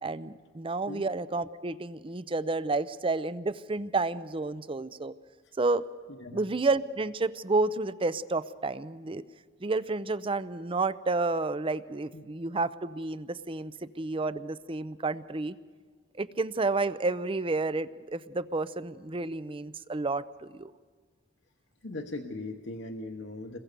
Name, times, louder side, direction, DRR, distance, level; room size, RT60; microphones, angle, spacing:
voice 1, 0.0-5.1 5.6-5.8 6.3-9.2 9.6-15.6 16.2-20.7, right 3 dB, 30° right, 15 dB, 0.6 m, -30 dB
voice 2, 6.1-6.5 12.1-12.2 21.8-23.6, left 2 dB, 70° left, 3 dB, 1.1 m, -39 dB
27.5 x 21.5 x 6.8 m, 1.5 s
head